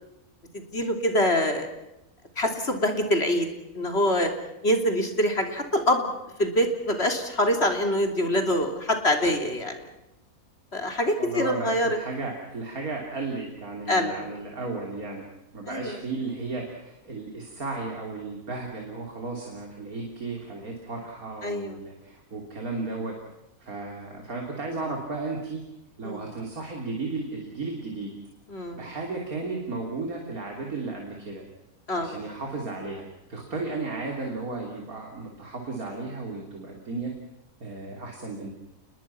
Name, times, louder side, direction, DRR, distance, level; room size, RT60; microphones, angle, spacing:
voice 1, 0.5-1.7 2.4-3.5 3.8-4.3 4.6-6.1 6.4-9.7 10.7-12.0 13.9-14.1 15.7-16.0 21.4-21.8 26.0-26.3 28.5-28.9 31.9-32.2, left 1 dB, 45° left, 4 dB, 3.4 m, -25 dB
voice 2, 11.2-15.2 15.5-23.1 23.6-25.6 26.0-28.1 28.7-31.4 31.9-33.0 33.3-37.1 37.6-38.5, right 3 dB, 70° right, 0 dB, 3.8 m, -34 dB
29.5 x 21.5 x 5.9 m, 0.94 s
omnidirectional pair, 1.6 m